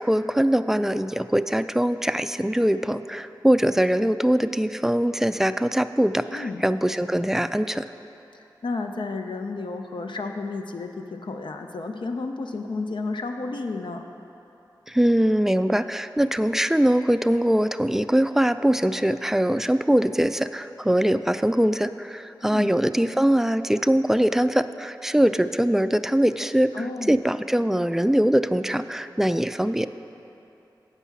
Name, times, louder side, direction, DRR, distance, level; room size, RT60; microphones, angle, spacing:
voice 1, 0.0-7.9 14.9-29.9, right 1 dB, 5° right, 11 dB, 0.3 m, -22 dB
voice 2, 6.3-6.6 8.3-14.1 22.4-22.7 26.7-27.2, left 3 dB, 75° left, 5 dB, 0.5 m, -32 dB
8.2 x 5.5 x 7.0 m, 2.9 s
cardioid pair, 40°, 8 cm